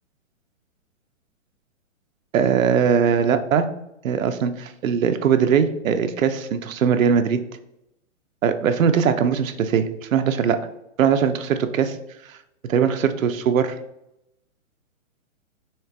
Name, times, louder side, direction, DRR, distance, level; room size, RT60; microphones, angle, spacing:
voice 1, 2.3-3.7 4.0-7.4 8.4-10.6 11.0-12.0 12.3-12.4 12.7-13.7, right 7 dB, 80° right, 9 dB, 0.6 m, -20 dB
4.4 x 3.2 x 3.2 m, 0.85 s
hypercardioid pair, 155°, 40 cm